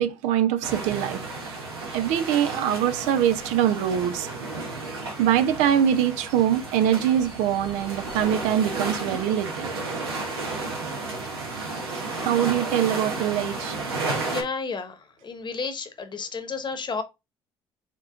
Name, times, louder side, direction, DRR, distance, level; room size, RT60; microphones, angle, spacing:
voice 1, 0.0-1.6 1.9-4.3 5.2-9.7 12.2-13.8, right 10 dB, 70° right, 0.6 m, -23 dB
sound 1, 0.6-14.4, right 3 dB, 85° right, 1.1 m, -33 dB
voice 2, 14.2-17.0, left 4 dB, 40° left, 1.1 m, -32 dB
4.6 x 3.1 x 3.6 m
hypercardioid pair, 50°, 13 cm